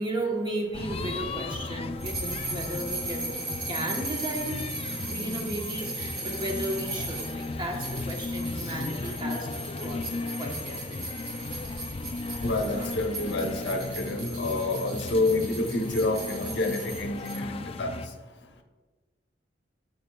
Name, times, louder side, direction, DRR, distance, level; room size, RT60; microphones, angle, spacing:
voice 1, 0.0-4.7 4.9-9.5 9.8-11.1 12.7-12.9, right 1 dB, 25° right, 1 dB, 1.1 m, -35 dB
sound 1, 0.7-18.1, left 3 dB, 35° left, 0.4 m, -36 dB
sound 2, 2.0-17.4, right 2 dB, 85° right, 2.2 m, -38 dB
voice 2, 12.4-18.0, left 2 dB, 70° left, 5 dB, 0.8 m, -28 dB
11.5 x 6.7 x 2.3 m, 1.3 s
head